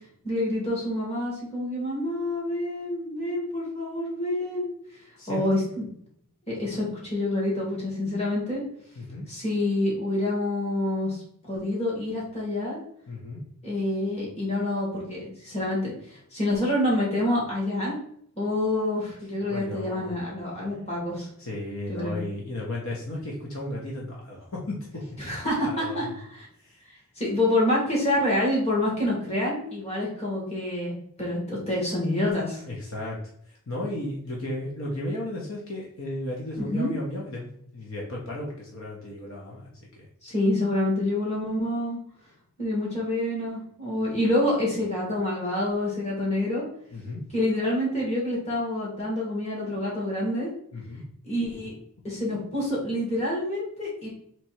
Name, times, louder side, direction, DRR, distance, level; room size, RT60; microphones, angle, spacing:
voice 1, 0.2-4.7 5.3-5.8 6.5-8.6 9.3-12.8 13.6-18.0 18.3-21.3 21.9-22.2 25.2-26.4 27.2-32.6 36.6-36.9 40.2-42.0 42.6-46.6 47.3-50.5 51.2-51.8 52.0-54.1, left 1 dB, 30° left, -4 dB, 1.7 m, -27 dB
voice 2, 5.2-5.6 9.0-9.3 13.1-13.4 19.4-20.1 21.4-25.1 25.6-26.2 26.6-26.8 32.7-33.2 33.5-37.5 37.7-40.1 46.9-47.2 50.7-51.0, left 1 dB, 65° left, -3 dB, 0.9 m, -34 dB
3.4 x 3.0 x 4.4 m, 0.66 s
head